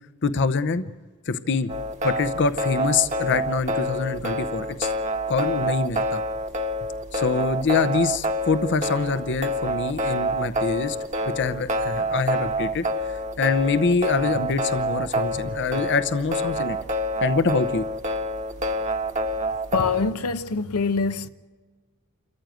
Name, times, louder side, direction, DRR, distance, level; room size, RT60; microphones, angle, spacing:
voice 1, 0.2-0.9 1.3-1.7 2.0-4.9 5.3-6.2 7.1-11.0 11.3-16.8 17.2-17.9, left 4 dB, 55° left, 0.8 m, -25 dB
sound 1, 1.7-20.1, equal, 35° right, 1.2 m, -27 dB
voice 2, 19.7-21.3, left 4 dB, 90° left, 1.0 m, -24 dB
28.5 x 14.0 x 9.2 m
head